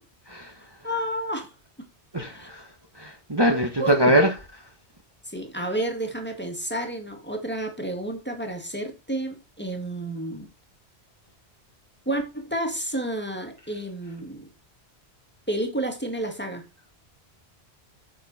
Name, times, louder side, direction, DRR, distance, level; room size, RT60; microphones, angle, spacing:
voice 1, 0.8-1.5 1.8-1.9 2.3-2.5 3.8-4.1 5.2-10.5 12.1-14.5 15.5-16.6, right 1 dB, 10° left, 2.2 m, -30 dB
voice 2, 2.1-2.6 3.0-4.3, equal, 25° right, 1.4 m, -22 dB
10.5 x 6.9 x 4.3 m
omnidirectional pair, 1.1 m